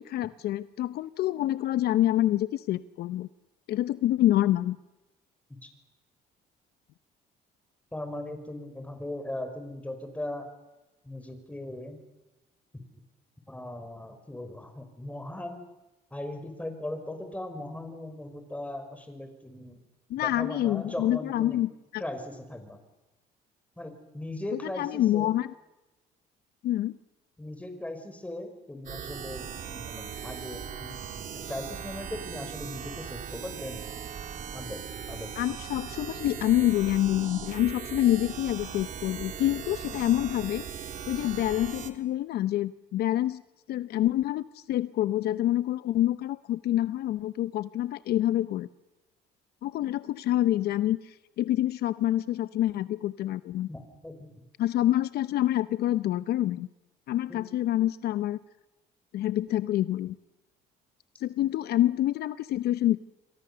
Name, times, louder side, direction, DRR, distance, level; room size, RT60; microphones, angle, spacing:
voice 1, 0.0-3.3 3.7-4.8 20.1-22.0 24.8-25.5 26.6-27.0 35.4-40.6 41.1-43.4 43.7-48.7 49.6-53.7 54.6-56.7 57.1-58.4 59.1-60.2 61.2-63.0, left 13 dB, 70° left, 14 dB, 0.8 m, -27 dB
voice 2, 7.9-10.5 11.0-12.0 12.7-12.8 13.5-15.6 16.1-19.8 20.2-21.6 22.0-22.8 23.8-25.3 27.4-33.8 34.5-35.6 53.7-54.3 57.3-57.4, left 1 dB, 10° left, 7 dB, 5.2 m, -39 dB
sound 1, 28.8-41.9, right 8 dB, 50° right, 3.0 m, -39 dB
28.0 x 23.5 x 6.9 m, 1.1 s
cardioid pair, 110°, 17 cm